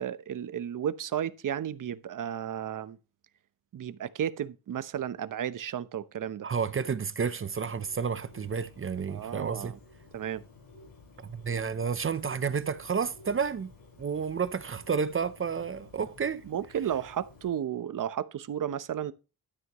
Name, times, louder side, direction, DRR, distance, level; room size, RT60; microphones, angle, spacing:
voice 1, 0.0-3.0 3.7-6.5 9.1-9.8 10.1-10.4 16.4-19.1, right 9 dB, 60° right, 0.9 m, -33 dB
voice 2, 6.4-9.7 11.2-13.7 14.0-16.4, right 6 dB, 35° right, 0.7 m, -31 dB
Bird, 7.8-17.5, left 3 dB, 70° left, 7.0 m, -54 dB
12.5 x 7.9 x 3.1 m
cardioid pair, 100°, 36 cm